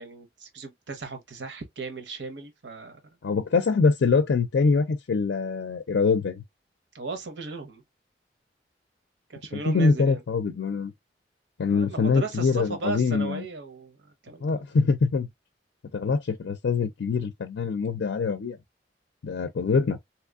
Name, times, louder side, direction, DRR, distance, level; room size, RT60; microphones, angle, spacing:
voice 1, 0.0-3.0 6.9-7.8 9.3-10.2 11.7-14.0 14.2-14.6, right 3 dB, 85° right, 0.9 m, -36 dB
voice 2, 3.2-6.4 9.5-10.9 11.6-13.4 14.4-15.3 15.9-18.6 19.2-20.0, left 4 dB, 80° left, 0.4 m, -24 dB
3.4 x 2.9 x 2.3 m
head